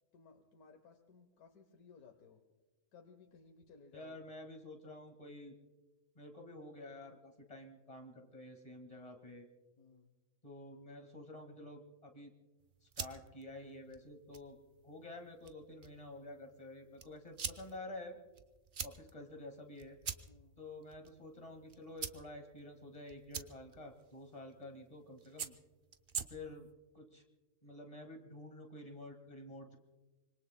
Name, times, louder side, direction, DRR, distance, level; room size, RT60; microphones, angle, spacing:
voice 1, 0.1-2.4 2.9-4.2 9.8-10.1 20.2-20.6, left 5 dB, 85° left, 3 dB, 1.6 m, -60 dB
voice 2, 3.9-5.6 6.2-9.5 10.4-12.3 12.8-14.6 14.8-18.2 18.8-20.0 20.6-25.5 26.3-26.7 26.9-27.2 27.6-29.8, left 1 dB, 25° left, 3 dB, 1.9 m, -50 dB
sound 1, 12.6-26.7, right 6 dB, 45° right, 0.7 m, -48 dB
25.5 x 24.5 x 2.2 m, 1.2 s
omnidirectional pair, 1.5 m